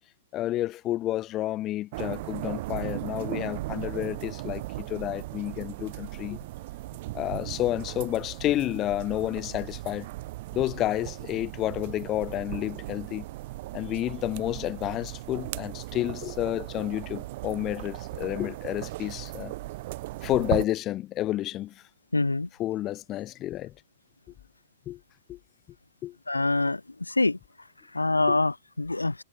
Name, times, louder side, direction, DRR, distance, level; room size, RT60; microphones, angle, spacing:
voice 1, 0.3-6.4 7.1-10.1 10.5-13.3 13.7-19.5 20.2-21.7 22.6-23.7 24.9-25.0 25.3-25.4 26.0-26.1 28.3-28.4, left 14 dB, 30° left, 0.9 m, -30 dB
sound 1, 1.9-20.7, right 19 dB, 50° right, 1.7 m, -37 dB
voice 2, 22.1-22.5 26.3-26.8 27.1-27.4 27.9-29.1, left 2 dB, 90° left, 0.8 m, -25 dB
figure-of-eight pair, 105°, 0 cm